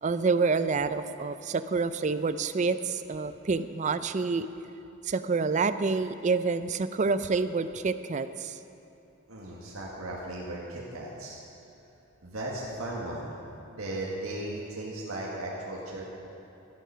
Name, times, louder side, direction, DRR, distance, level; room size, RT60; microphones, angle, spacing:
voice 1, 0.0-4.5 5.0-8.6, right 4 dB, 35° right, 12 dB, 0.4 m, -28 dB
voice 2, 9.3-11.4 12.2-13.3 13.7-16.0, right 1 dB, 90° right, -4 dB, 1.8 m, -36 dB
12.5 x 11.0 x 5.7 m, 2.9 s
head